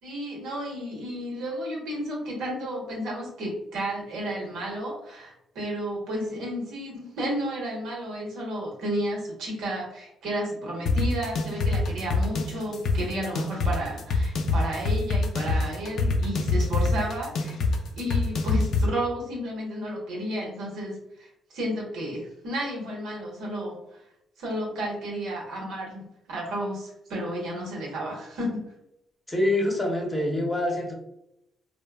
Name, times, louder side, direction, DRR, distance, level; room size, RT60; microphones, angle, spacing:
voice 1, 0.0-17.6 18.0-24.0 24.4-28.6, equal, 85° right, -2 dB, 1.0 m, -32 dB
sound 1, 10.9-18.9, left 3 dB, 70° left, 0.4 m, -25 dB
voice 2, 29.3-30.9, left 1 dB, 15° left, -1 dB, 0.7 m, -25 dB
2.9 x 2.1 x 2.2 m, 0.82 s
cardioid pair, 90°, 0 cm